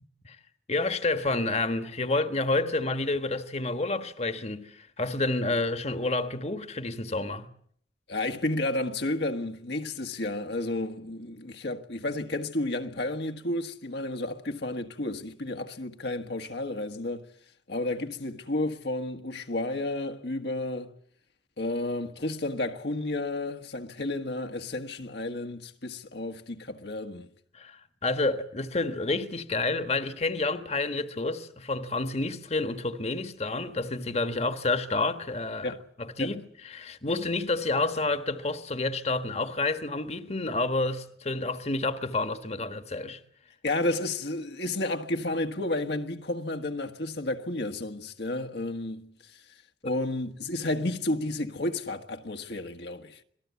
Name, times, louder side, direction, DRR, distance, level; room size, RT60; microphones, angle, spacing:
voice 1, 0.7-7.5 27.5-43.2 49.8-49.9, left 2 dB, 35° left, 1.5 m, -29 dB
voice 2, 8.1-17.3 17.7-20.9 21.6-27.3 35.6-35.8 36.2-36.4 43.6-49.4 49.8-53.2, left 2 dB, 65° left, 1.6 m, -32 dB
27.0 x 19.0 x 8.4 m
head